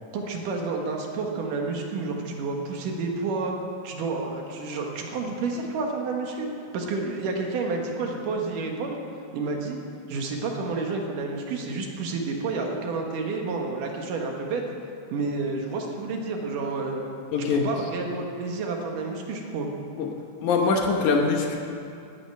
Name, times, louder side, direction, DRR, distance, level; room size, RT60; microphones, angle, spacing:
voice 1, 0.1-3.6 3.8-6.5 6.7-9.0 9.3-9.8 10.1-14.6 15.1-17.0 17.5-19.7, right 3 dB, 70° right, 1 dB, 2.9 m, -30 dB
voice 2, 17.3-17.7 20.0-20.1 20.4-21.6, left 4 dB, 65° left, 1 dB, 2.3 m, -23 dB
12.0 x 8.8 x 9.4 m, 2.5 s
omnidirectional pair, 4.0 m